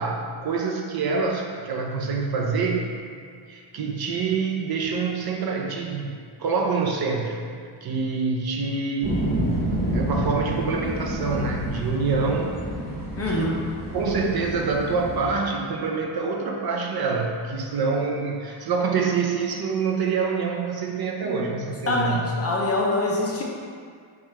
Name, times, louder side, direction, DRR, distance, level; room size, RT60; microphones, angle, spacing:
voice 1, 0.0-2.9 3.5-7.4 7.8-9.2 9.9-12.6 13.3-13.6 13.9-22.3, right 4 dB, 50° right, 1 dB, 0.5 m, -26 dB
sound 1, 9.0-15.2, right 1 dB, 20° right, 0.9 m, -29 dB
voice 2, 13.2-13.5 21.2-21.4 21.9-23.4, left 2 dB, 30° left, -3 dB, 0.5 m, -24 dB
4.8 x 2.4 x 4.1 m, 2.1 s
wide cardioid pair, 145°, 49 cm